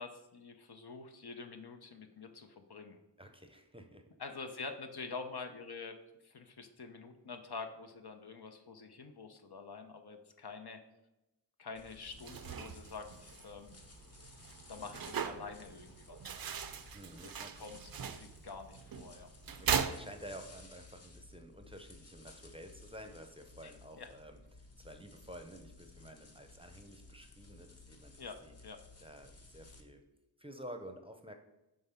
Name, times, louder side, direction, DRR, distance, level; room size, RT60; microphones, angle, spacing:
voice 1, 0.0-3.0 4.2-6.0 6.2-10.8 11.6-13.7 14.7-16.2 17.2-19.3 23.6-23.7 24.0-24.1 28.2-28.8, left 4 dB, 65° left, 6 dB, 0.7 m, -47 dB
voice 2, 3.2-4.0 16.9-17.7 19.6-30.0 30.4-31.3, equal, 15° right, 6 dB, 0.7 m, -51 dB
sound 1, 11.8-29.8, left 2 dB, 35° left, 0.9 m, -57 dB
sound 2, 12.1-20.7, right 7 dB, 55° right, 0.5 m, -40 dB
5.4 x 3.4 x 5.6 m, 0.96 s
cardioid pair, 40°, 42 cm